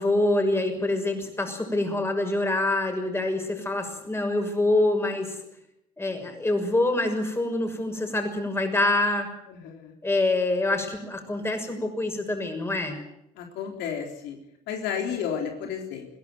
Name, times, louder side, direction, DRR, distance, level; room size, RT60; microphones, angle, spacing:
voice 1, 0.0-5.4 6.0-9.3 10.0-13.0, left 2 dB, 15° left, 5 dB, 6.4 m, -25 dB
voice 2, 9.6-9.9 13.4-14.4 14.7-16.1, left 7 dB, 90° left, 3 dB, 3.8 m, -32 dB
22.0 x 17.0 x 9.5 m, 0.81 s
cardioid pair, 110°, 17 cm